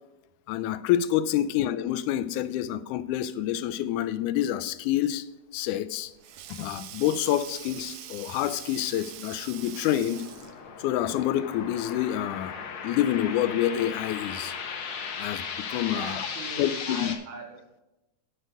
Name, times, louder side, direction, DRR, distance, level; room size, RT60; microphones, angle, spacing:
voice 1, 0.5-5.3 5.5-6.1 6.5-10.2 10.8-12.6 12.8-14.5 15.2-16.3 16.6-17.1, left 12 dB, 85° left, 2.1 m, -27 dB
Sink (filling or washing), 5.6-10.7, right 11 dB, 85° right, 1.3 m, -44 dB
sound 1, 8.8-17.2, left 6 dB, 60° left, 1.5 m, -37 dB
voice 2, 15.9-17.8, right 4 dB, 70° right, 3.1 m, -41 dB
9.0 x 6.5 x 5.0 m
omnidirectional pair, 3.5 m